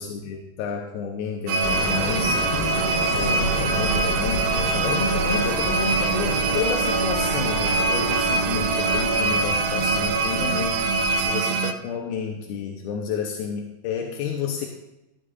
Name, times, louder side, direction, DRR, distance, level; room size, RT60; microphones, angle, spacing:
voice 1, 0.0-2.5 3.2-14.7, left 6 dB, 80° left, 2 dB, 2.6 m, -30 dB
sound 1, 1.5-11.7, right 4 dB, 80° right, 2.3 m, -24 dB
sound 2, 1.6-11.3, equal, 15° left, 3.2 m, -30 dB
Wind instrument woodwind instrument, 5.2-10.6, right 5 dB, 55° right, 2.7 m, -34 dB
15.0 x 11.0 x 2.5 m, 0.95 s
omnidirectional pair, 4.5 m